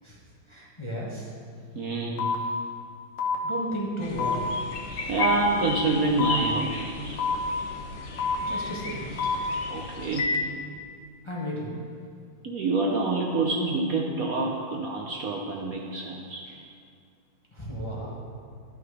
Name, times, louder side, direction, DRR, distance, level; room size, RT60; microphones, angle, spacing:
voice 1, 0.5-1.3 3.4-4.4 8.4-9.2 11.2-11.7 17.5-18.2, equal, 20° left, -5 dB, 1.1 m, -34 dB
voice 2, 1.7-2.4 5.1-7.2 9.5-10.4 12.4-16.6, right 3 dB, 60° right, -1 dB, 1.1 m, -27 dB
sound 1, 2.2-2.4 3.2-3.4 4.2-4.4 5.2-5.4 6.2-6.4 7.2-7.4 8.2-8.4 9.2-9.4 10.2-10.4, left 6 dB, 80° left, 1.8 m, -26 dB
sound 2, 4.0-10.2, left 2 dB, 50° left, 1.0 m, -35 dB
12.0 x 5.9 x 4.8 m, 2.2 s
omnidirectional pair, 2.0 m